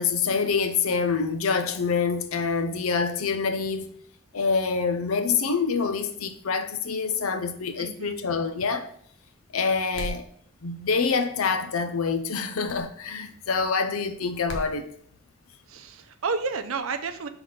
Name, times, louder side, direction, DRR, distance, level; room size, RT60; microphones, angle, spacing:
voice 1, 0.0-3.9 4.3-8.9 9.5-10.3 10.6-14.9, left 5 dB, 85° left, 0.6 m, -26 dB
voice 2, 7.8-8.2 15.7-17.3, right 4 dB, 80° right, 0.6 m, -31 dB
sound 1, 9.9-10.3 12.7-12.9 14.5-14.7, left 1 dB, 55° left, 1.0 m, -35 dB
5.9 x 3.9 x 4.9 m
head